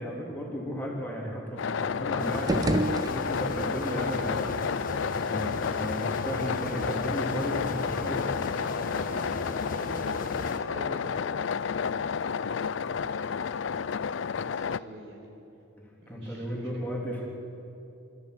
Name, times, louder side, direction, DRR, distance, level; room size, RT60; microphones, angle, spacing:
voice 1, 0.0-2.5 2.9-4.6 5.3-8.7 16.1-17.2, equal, 10° left, -3 dB, 3.5 m, -34 dB
sound 1, 1.6-14.8, left 6 dB, 65° left, 0.4 m, -31 dB
sound 2, 2.2-10.6, left 2 dB, 45° left, 1.5 m, -37 dB
sound 3, 2.3-3.7, right 1 dB, 20° right, 0.5 m, -29 dB
voice 2, 8.9-15.2 16.0-16.7, right 1 dB, 65° right, -1 dB, 5.4 m, -46 dB
26.5 x 14.5 x 8.3 m, 2.9 s
head